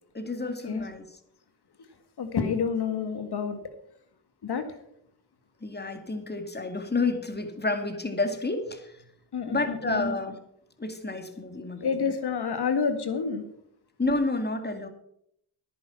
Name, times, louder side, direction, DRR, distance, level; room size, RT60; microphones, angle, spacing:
voice 1, 0.1-1.1 5.6-8.9 9.5-10.4 10.8-12.1 14.0-14.9, left 3 dB, 20° left, 7 dB, 2.2 m, -30 dB
voice 2, 2.2-3.6 4.4-4.6 9.3-10.1 11.8-13.4, left 6 dB, 55° left, 8 dB, 2.0 m, -28 dB
10.5 x 9.6 x 5.9 m, 0.73 s
supercardioid pair, 55°, 46 cm